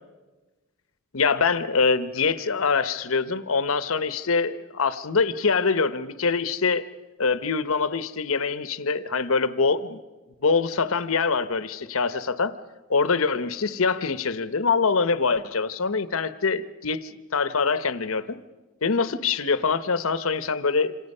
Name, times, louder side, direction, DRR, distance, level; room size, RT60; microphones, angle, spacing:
voice 1, 1.1-6.8 7.2-10.0 10.4-12.6 12.9-18.4 18.8-20.9, left 4 dB, 75° left, 13 dB, 0.9 m, -24 dB
27.0 x 26.5 x 5.5 m, 1.2 s
head